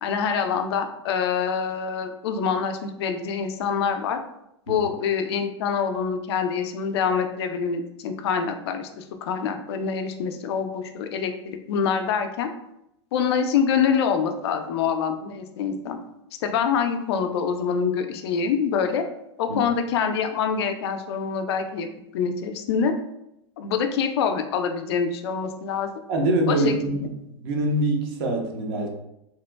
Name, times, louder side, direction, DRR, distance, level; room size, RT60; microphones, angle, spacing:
voice 1, 0.0-4.2 4.7-12.5 13.1-16.0 16.4-19.0 19.4-21.9 22.1-22.9 23.6-25.9 26.5-26.7, left 6 dB, 60° left, 6 dB, 0.4 m, -25 dB
voice 2, 26.1-27.1 27.4-28.9, right 1 dB, 50° right, 2 dB, 0.6 m, -24 dB
2.8 x 2.1 x 2.2 m, 0.83 s
hypercardioid pair, 100°, 15 cm